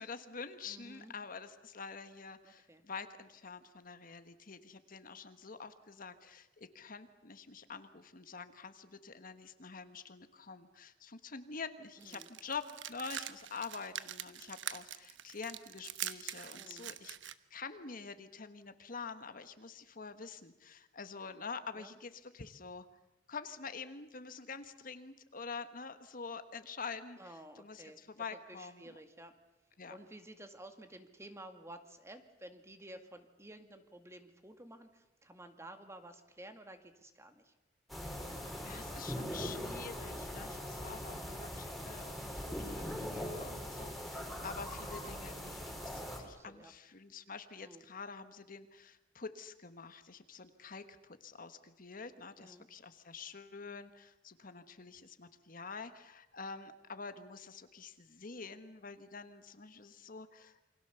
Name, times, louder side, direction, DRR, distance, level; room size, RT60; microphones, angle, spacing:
voice 1, 0.0-22.9 23.3-29.0 29.8-30.0 38.3-60.7, left 5 dB, 50° left, 10 dB, 1.4 m, -47 dB
voice 2, 0.7-1.1 2.4-2.8 12.0-12.3 14.0-14.1 16.5-16.9 21.7-21.9 27.2-29.3 29.9-37.5 42.7-43.2 46.3-46.7 47.6-47.8 52.4-52.7, right 1 dB, 15° right, 7 dB, 2.1 m, -53 dB
sound 1, 12.0-17.3, right 11 dB, 80° right, 1.1 m, -44 dB
sound 2, 37.9-46.2, equal, ahead, 4.7 m, -41 dB
28.5 x 24.5 x 7.0 m, 0.95 s
head